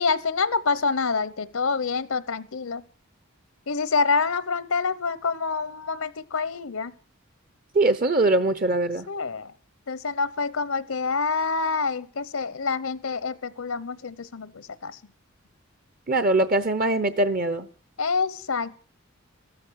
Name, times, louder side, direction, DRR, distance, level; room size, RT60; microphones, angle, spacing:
voice 1, 0.0-2.8 3.7-6.9 9.1-9.5 9.9-15.0 18.0-18.7, left 4 dB, 80° left, 17 dB, 0.8 m, -27 dB
voice 2, 7.7-9.1 16.1-17.7, right 2 dB, 40° right, 14 dB, 0.8 m, -22 dB
14.5 x 13.5 x 6.4 m, 0.39 s
head